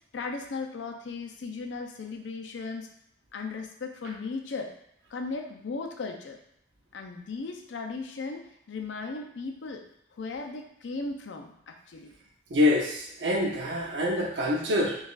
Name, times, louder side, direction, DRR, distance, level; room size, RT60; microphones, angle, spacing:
voice 1, 0.1-2.9 3.3-4.7 5.1-6.4 6.9-9.8 10.2-12.1, left 4 dB, 75° left, 3 dB, 0.5 m, -36 dB
voice 2, 12.5-15.0, left 2 dB, 75° right, -1 dB, 0.6 m, -25 dB
4.6 x 2.4 x 2.4 m, 0.74 s
head